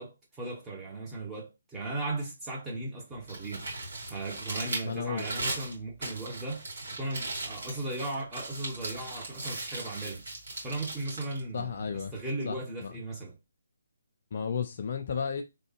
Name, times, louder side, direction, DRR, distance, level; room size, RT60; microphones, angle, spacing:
voice 1, 0.0-3.7 4.1-10.2 10.6-11.8 12.1-13.4, right 2 dB, 10° right, 0.9 m, -37 dB
Crumpling crinkling, 3.1-12.2, right 2 dB, 55° right, 2.1 m, -38 dB
voice 2, 4.8-5.3 11.5-12.1 12.5-12.9 14.3-15.4, left 6 dB, 40° left, 0.4 m, -33 dB
3.2 x 2.2 x 3.1 m
figure-of-eight pair, 140°, 0 cm